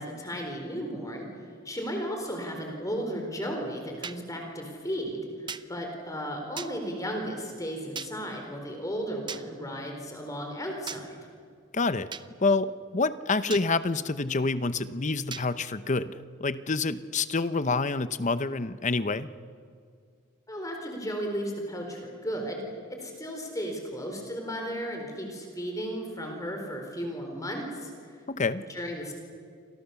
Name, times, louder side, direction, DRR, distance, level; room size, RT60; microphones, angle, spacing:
voice 1, 0.0-11.2 20.5-22.6 22.9-28.2 28.7-29.2, equal, 15° left, 2 dB, 4.2 m, -35 dB
sound 1, 4.0-4.2 5.5-5.6 6.6-6.7 7.9-8.1 9.3-9.4 10.9-11.0 12.1-12.3 13.5-13.7 15.3-15.5, right 6 dB, 20° right, 0.7 m, -37 dB
voice 2, 11.7-12.1 12.4-19.3 28.3-28.7, left 3 dB, 35° left, 13 dB, 0.8 m, -27 dB
29.5 x 26.0 x 7.1 m, 2.2 s
head